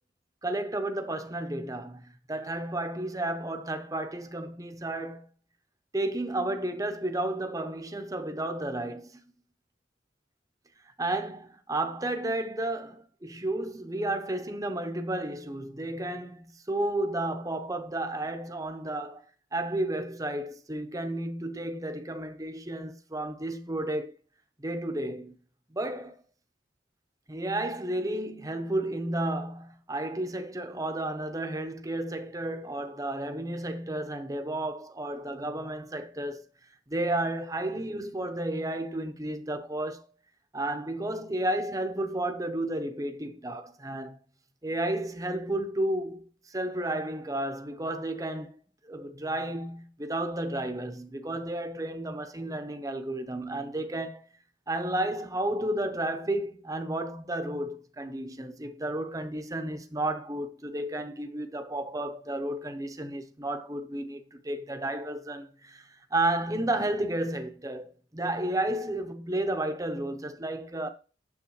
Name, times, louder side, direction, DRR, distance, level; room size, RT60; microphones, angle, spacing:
voice 1, 0.4-5.3 5.9-9.2 11.0-19.2 19.5-24.2 24.6-25.3 25.7-26.2 27.3-36.4 36.9-40.1 40.5-44.2 44.6-48.6 48.9-54.2 54.7-70.9, right 1 dB, 20° right, 0.8 m, -32 dB
9.6 x 7.4 x 3.1 m
head